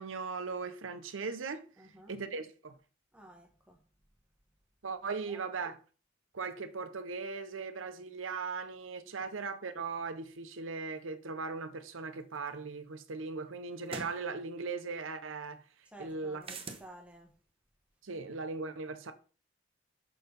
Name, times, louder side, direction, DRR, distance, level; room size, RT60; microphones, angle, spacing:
voice 1, 0.0-1.7 2.1-2.8 4.8-5.8 6.3-15.6 16.0-16.4 18.0-19.1, right 4 dB, 90° right, 0.8 m, -38 dB
voice 2, 1.8-2.2 3.1-3.8 5.3-5.4 15.9-17.3, right 1 dB, 5° right, 1.2 m, -53 dB
sound 1, 12.5-12.6 13.9-14.2 16.4-16.9, right 4 dB, 30° right, 0.9 m, -41 dB
6.4 x 4.5 x 5.2 m
head